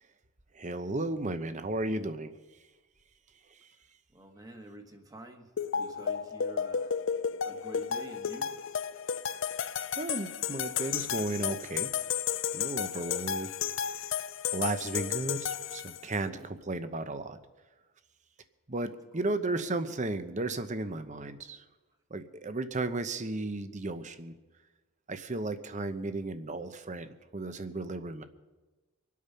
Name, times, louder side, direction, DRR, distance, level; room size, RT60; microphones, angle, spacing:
voice 1, 0.5-2.3 10.0-11.9 12.5-13.5 14.5-17.4 18.7-21.6 22.1-24.3 25.1-28.2, right 2 dB, 35° right, 11 dB, 0.8 m, -34 dB
voice 2, 4.1-7.0 7.4-8.5 14.1-14.2 19.1-19.3, right 1 dB, 15° right, 4 dB, 1.4 m, -48 dB
sound 1, 5.6-16.2, left 8 dB, 55° left, 0.5 m, -33 dB
25.0 x 8.6 x 5.7 m, 1.2 s
head